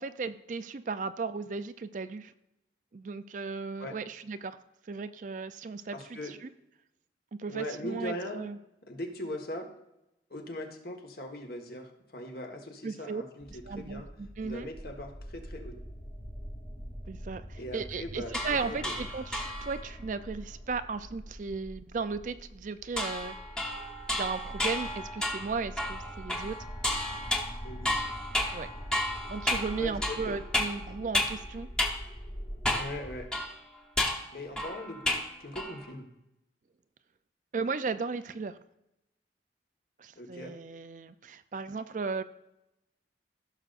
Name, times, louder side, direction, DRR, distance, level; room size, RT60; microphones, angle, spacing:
voice 1, 0.0-2.3 2.9-4.6 4.9-6.5 7.4-8.6 12.8-13.2 13.7-14.7 17.1-23.4 24.1-26.7 28.5-28.7 29.3-31.7 37.5-38.6 40.0-42.2, right 4 dB, 45° right, 12 dB, 0.4 m, -36 dB
voice 2, 5.9-6.3 7.5-8.5 8.8-9.7 10.3-14.1 14.4-15.8 17.6-18.3 18.6-19.0 27.6-28.0 29.8-30.4 32.8-33.3 34.3-36.1 40.1-40.6, left 1 dB, 55° left, 3 dB, 1.4 m, -40 dB
sound 1, 13.4-33.2, equal, 25° left, 1.5 m, -44 dB
sound 2, 18.3-19.9 23.0-31.5 31.8-32.0 32.6-33.0 33.3-35.3 35.5-35.9, left 1 dB, 5° left, 1.0 m, -32 dB
15.5 x 6.6 x 2.5 m, 0.88 s
head